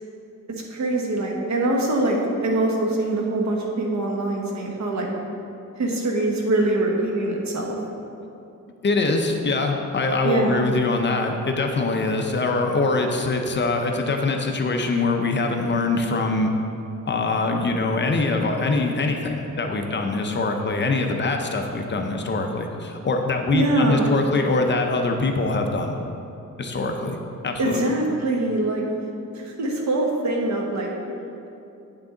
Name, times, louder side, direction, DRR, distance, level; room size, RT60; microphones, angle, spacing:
voice 1, 0.7-5.1 5.8-7.8 10.2-10.6 23.5-24.1 27.6-28.9 29.3-30.9, right 2 dB, 60° right, 0 dB, 1.3 m, -23 dB
voice 2, 8.8-16.5 17.1-26.0 26.6-27.2 27.4-27.9, left 3 dB, 35° left, 3 dB, 0.6 m, -23 dB
9.0 x 6.0 x 3.8 m, 2.8 s
wide cardioid pair, 140°, 32 cm